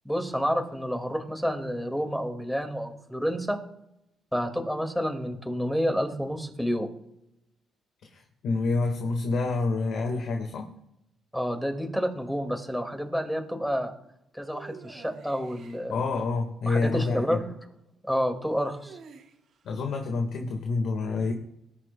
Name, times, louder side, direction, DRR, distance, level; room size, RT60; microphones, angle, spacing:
voice 1, 0.1-3.6 4.3-6.9 11.3-13.9 14.3-16.0 16.7-17.5 18.0-19.0, equal, ahead, 5 dB, 2.1 m, -29 dB
voice 2, 8.0-10.7 15.9-17.4 19.6-21.3, left 3 dB, 75° left, 3 dB, 1.6 m, -28 dB
sound 1, 14.4-15.8 18.4-19.6, right 5 dB, 70° right, 2.1 m, -48 dB
20.0 x 10.0 x 2.3 m, 0.81 s
cardioid pair, 90°, 0 cm